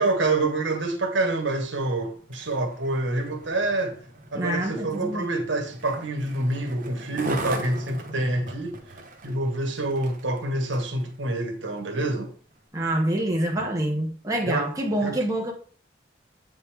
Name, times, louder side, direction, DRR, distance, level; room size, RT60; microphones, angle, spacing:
voice 1, 0.0-4.0 4.3-8.8 9.2-12.3 14.4-14.7 15.0-15.2, right 2 dB, 85° right, 1.6 m, -27 dB
Skateboard, 2.2-11.0 11.6-11.8, right 1 dB, 45° right, 1.3 m, -38 dB
voice 2, 4.3-5.3 12.7-15.5, right 1 dB, 20° right, 1.5 m, -26 dB
8.2 x 5.5 x 3.6 m
head